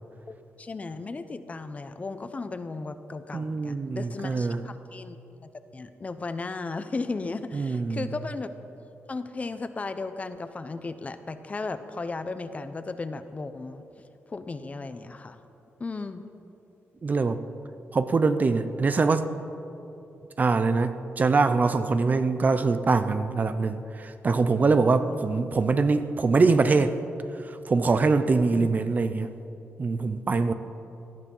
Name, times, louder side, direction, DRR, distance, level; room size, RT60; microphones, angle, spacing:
voice 1, 0.3-5.2 5.7-8.5 9.1-13.8 14.3-15.4 15.8-16.2 25.1-25.2 28.5-28.7, left 3 dB, 30° left, 10 dB, 0.8 m, -35 dB
voice 2, 3.3-4.6 7.5-8.1 17.0-17.4 17.9-19.3 20.4-27.0 27.7-29.3 29.8-30.5, right 4 dB, 35° right, 11 dB, 0.7 m, -23 dB
18.5 x 13.0 x 5.5 m, 2.9 s
wide cardioid pair, 115°, 5 cm